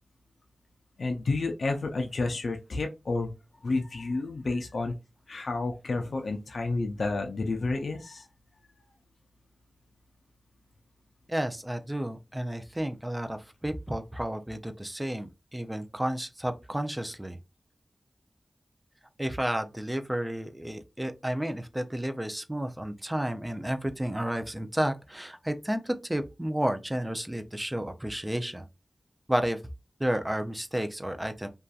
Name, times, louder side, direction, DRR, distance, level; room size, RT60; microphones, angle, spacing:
voice 1, 1.0-3.3 3.6-4.9 5.3-8.3, left 3 dB, 80° left, 0.4 m, -30 dB
voice 2, 11.3-17.4 19.2-28.6 29.3-29.6 30.0-31.5, right 1 dB, 15° right, 0.4 m, -31 dB
2.6 x 2.3 x 2.4 m
cardioid pair, 50°, 0 cm